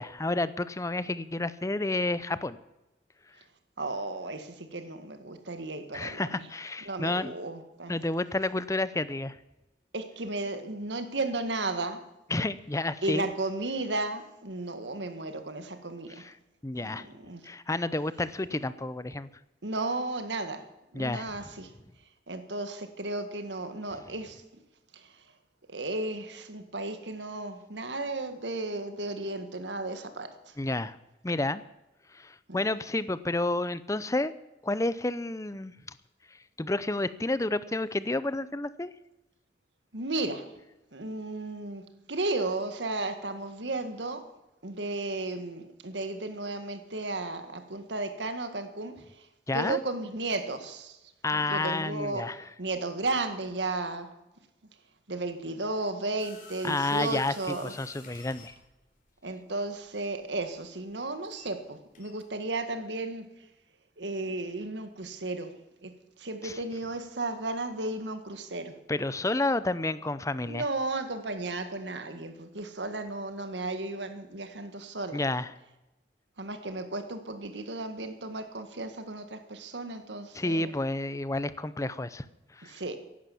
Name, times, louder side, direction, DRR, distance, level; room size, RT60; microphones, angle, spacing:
voice 1, 0.0-2.6 5.9-7.3 7.9-9.4 12.3-13.3 16.2-16.3 16.6-17.1 17.4-19.3 20.9-21.5 30.6-31.0 31.2-31.6 32.1-34.3 34.6-35.7 36.6-38.9 49.5-49.8 51.2-52.4 56.6-58.5 66.4-66.6 68.9-70.6 75.1-75.5 80.3-82.2 82.6-82.7, left 2 dB, 20° left, 15 dB, 0.6 m, -30 dB
voice 2, 3.8-6.5 6.8-8.0 9.9-12.0 13.0-16.2 16.8-17.4 19.6-20.7 20.9-21.7 22.3-24.4 24.9-25.2 25.7-30.5 32.5-32.6 39.9-40.5 40.9-44.3 44.6-49.3 49.5-51.0 51.3-52.2 52.6-54.1 55.1-57.7 59.2-63.2 64.0-65.5 65.8-68.7 70.5-75.2 76.4-80.7 82.6-83.0, right 2 dB, 90° right, 9 dB, 1.7 m, -34 dB
sound 1, 56.2-61.7 61.9-62.2, left 4 dB, 50° left, 3.7 m, -51 dB
15.0 x 11.5 x 7.1 m, 0.98 s
head